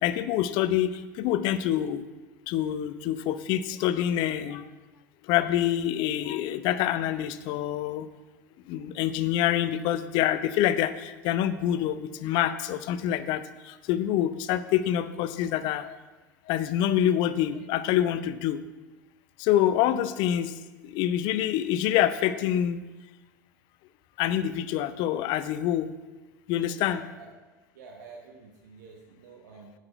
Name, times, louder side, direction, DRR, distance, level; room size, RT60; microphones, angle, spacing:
voice 1, 0.0-0.9 1.2-2.0 2.5-4.6 5.3-8.1 8.7-13.4 13.9-16.0 16.5-18.6 19.4-20.5 20.9-22.8 24.2-25.9 26.5-27.0, left 11 dB, 50° left, 13 dB, 0.6 m, -26 dB
voice 2, 26.8-27.3 27.7-29.7, right 4 dB, 65° right, 0 dB, 1.3 m, -48 dB
9.6 x 4.9 x 7.7 m, 1.2 s
figure-of-eight pair, 75°, 10 cm